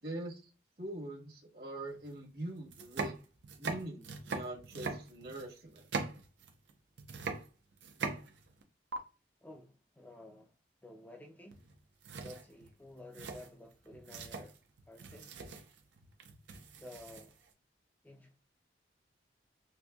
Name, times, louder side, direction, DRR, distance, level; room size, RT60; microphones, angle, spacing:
voice 1, 0.0-0.5 0.8-3.1 3.6-5.9, right 1 dB, 60° right, 1.2 m, -43 dB
sound 1, 2.0-2.1 2.6-6.7 7.0-8.6 8.9-9.0 11.5-11.8 12.0-17.5, right 4 dB, 80° right, 0.6 m, -42 dB
voice 2, 9.4-10.5 10.8-11.6 12.2-14.6 14.9-15.6 16.8-17.3 18.0-18.4, left 1 dB, 10° left, 0.3 m, -52 dB
4.2 x 2.5 x 2.3 m
head